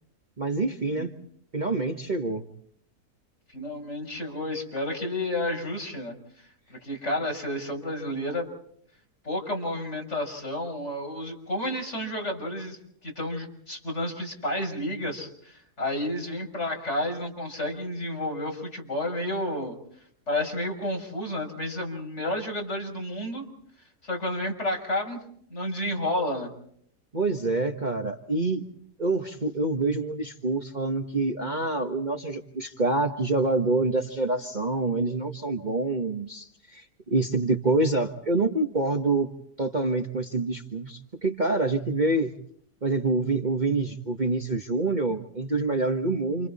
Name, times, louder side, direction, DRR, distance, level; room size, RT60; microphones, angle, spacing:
voice 1, 0.4-1.2 1.5-2.4 27.1-28.7 29.0-39.3 39.6-42.3 42.8-46.5, right 2 dB, 30° right, 3 dB, 1.5 m, -26 dB
voice 2, 3.5-6.1 6.7-8.5 9.2-19.8 20.3-23.5 24.0-25.2 25.5-26.5, left 1 dB, 45° left, 1 dB, 6.3 m, -31 dB
29.5 x 29.0 x 4.3 m, 0.66 s
omnidirectional pair, 1.7 m